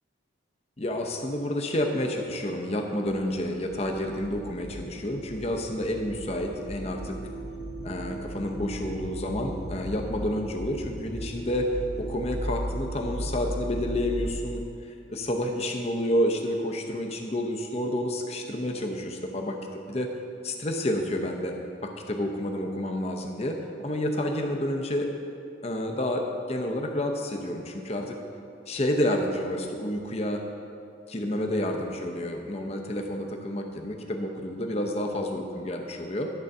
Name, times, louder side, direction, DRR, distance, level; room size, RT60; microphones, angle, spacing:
voice 1, 0.8-7.2 7.8-14.6 15.1-20.1 20.4-25.1 25.6-28.2 28.7-30.4 31.1-36.3, left 1 dB, 30° left, 3 dB, 0.7 m, -29 dB
sound 1, 3.6-14.3, equal, 45° left, 1.5 m, -37 dB
11.5 x 3.9 x 6.5 m, 2.5 s
head